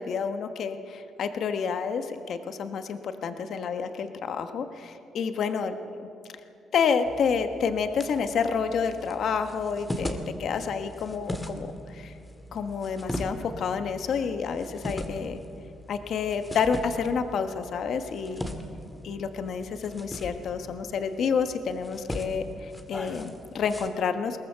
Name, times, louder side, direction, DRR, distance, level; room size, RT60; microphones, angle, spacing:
voice 1, 0.0-5.7 6.0-6.1 6.7-12.1 12.5-15.4 15.9-18.4 19.0-24.4, left 6 dB, 65° left, 8 dB, 1.3 m, -29 dB
sound 1, 7.0-23.9, left 1 dB, 15° left, 2.0 m, -39 dB
21.5 x 18.5 x 6.8 m, 2.5 s
cardioid pair, 90°, 0 cm